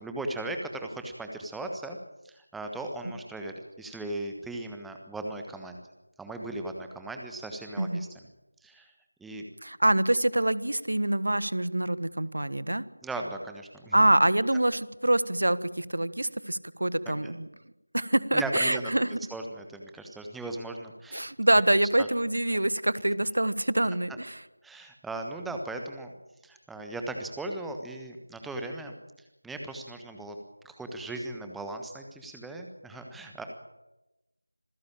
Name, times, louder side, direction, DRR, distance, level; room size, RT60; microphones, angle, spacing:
voice 1, 0.0-2.0 2.2-5.8 6.2-8.1 8.6-8.9 9.2-9.4 13.0-14.0 17.1-17.3 18.3-18.9 19.3-21.2 22.0-22.1 24.6-26.1 26.4-28.9 29.4-30.3 30.6-33.4, right 2 dB, ahead, 3 dB, 1.3 m, -37 dB
voice 2, 9.6-12.8 13.9-17.5 17.9-19.2 21.1-24.4, right 1 dB, 55° right, 16 dB, 1.5 m, -25 dB
26.5 x 15.5 x 8.8 m, 0.97 s
figure-of-eight pair, 170°, 0 cm